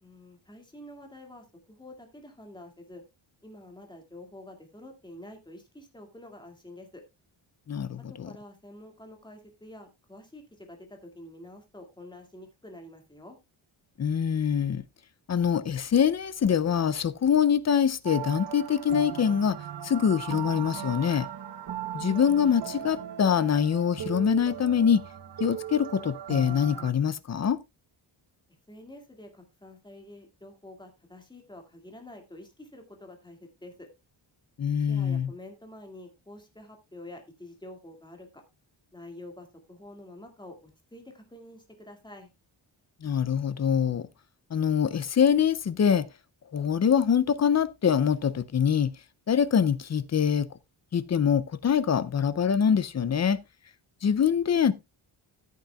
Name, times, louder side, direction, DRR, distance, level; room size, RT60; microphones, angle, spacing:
voice 1, 0.0-3.0 3.4-7.0 8.1-13.4 28.7-33.9 34.8-38.4 38.9-42.3, left 1 dB, 10° left, 2.0 m, -47 dB
voice 2, 7.7-8.3 14.0-14.8 15.3-19.6 19.8-21.3 21.9-25.0 25.4-27.6 34.6-35.3 43.0-44.1 44.5-46.1 46.5-48.9 49.3-50.5 50.9-53.4 54.0-54.7, left 7 dB, 35° left, 0.5 m, -24 dB
sound 1, 18.0-26.9, right 10 dB, 60° right, 1.0 m, -38 dB
14.0 x 8.3 x 2.3 m
wide cardioid pair, 155°, 48 cm